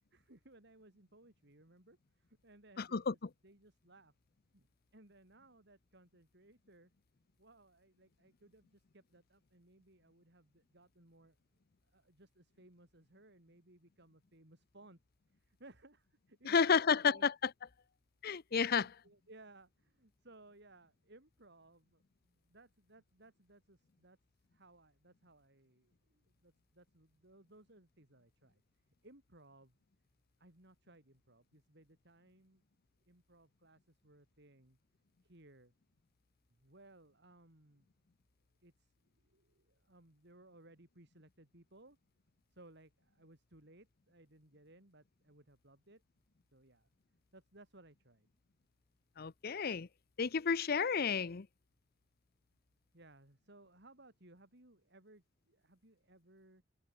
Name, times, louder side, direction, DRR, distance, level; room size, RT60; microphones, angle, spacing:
voice 1, 0.1-3.2 3.4-4.1 4.5-4.7 4.9-6.9 7.4-11.4 11.9-15.0 15.3-17.3 18.6-28.6 29.0-29.8 30.4-32.6 33.1-34.8 35.2-35.7 36.5-37.9 38.6-42.0 42.5-46.0 46.5-46.9 47.3-48.3 52.9-56.6, right 2 dB, 60° right, 4.1 m, -62 dB
voice 2, 2.8-3.1 16.4-17.5 18.2-18.9 49.2-49.9 50.2-51.5, left 6 dB, 50° left, 0.6 m, -31 dB
head